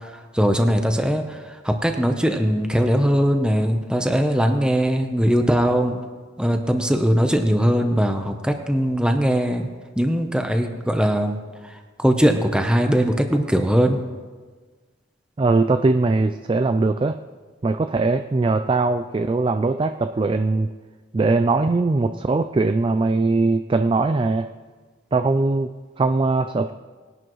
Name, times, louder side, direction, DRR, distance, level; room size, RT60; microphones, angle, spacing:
voice 1, 0.3-1.2 1.6-6.0 6.4-9.6 10.0-11.4 12.0-14.0, equal, 5° right, 5 dB, 0.7 m, -20 dB
voice 2, 15.4-17.2 17.6-20.7 21.1-24.5 25.1-26.7, right 3 dB, 25° right, 9 dB, 0.3 m, -21 dB
20.5 x 11.0 x 3.1 m, 1.4 s
head